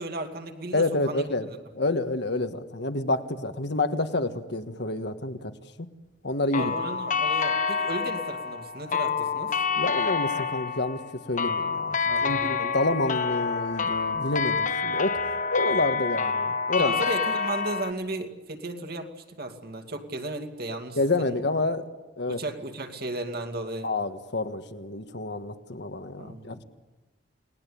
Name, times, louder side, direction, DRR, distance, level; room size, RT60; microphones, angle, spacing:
voice 1, 0.0-1.3 6.5-9.6 12.1-12.5 16.8-19.1 19.4-21.4 22.3-23.9 26.2-26.6, right 2 dB, 60° right, 7 dB, 2.4 m, -35 dB
voice 2, 0.7-5.5 5.8-5.9 6.2-6.7 9.8-11.0 11.3-15.2 15.5-16.9 21.0-21.9 22.2-22.4 23.8-26.6, left 2 dB, 70° left, 9 dB, 1.6 m, -28 dB
sound 1, 6.5-17.9, left 5 dB, 45° left, 1.3 m, -28 dB
29.5 x 19.5 x 8.6 m, 1.1 s
head